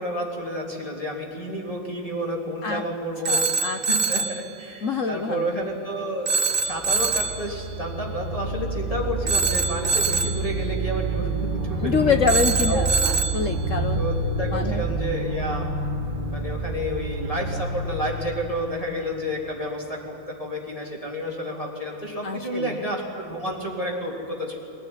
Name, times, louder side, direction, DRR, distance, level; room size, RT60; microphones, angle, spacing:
voice 1, 0.0-3.4 3.7-12.2 12.7-13.1 14.0-15.7 16.3-24.6, equal, 15° left, -2 dB, 3.3 m, -30 dB
voice 2, 3.3-3.8 4.8-5.5 11.8-14.0 14.5-14.8 22.2-22.8, left 5 dB, 55° left, 7 dB, 1.0 m, -25 dB
Telephone, 3.3-4.4 6.3-7.4 9.3-10.4 12.3-13.4, right 4 dB, 85° right, 0.5 m, -24 dB
sound 1, 6.6-19.4, right 3 dB, 25° right, 2.2 m, -29 dB
21.5 x 18.5 x 9.9 m, 2.9 s
omnidirectional pair, 2.2 m